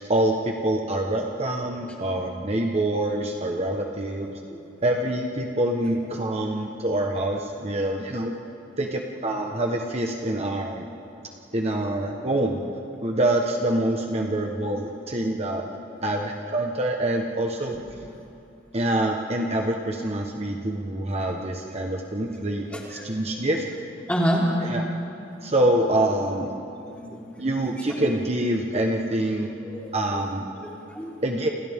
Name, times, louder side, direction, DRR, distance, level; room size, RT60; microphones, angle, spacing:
voice 1, 0.0-4.3 4.8-8.3 8.8-10.9 11.5-12.6 13.0-15.6 16.0-17.8 18.7-23.7 24.6-24.8 25.4-26.5 27.4-29.5 29.9-30.5 31.2-31.5, right 1 dB, 35° right, 1 dB, 1.3 m, -25 dB
voice 2, 22.7-23.3 24.1-24.4 25.3-25.5 26.9-27.4 29.6-30.3 30.6-31.1, equal, 10° left, -5 dB, 4.1 m, -29 dB
29.5 x 28.5 x 3.7 m, 2.7 s
head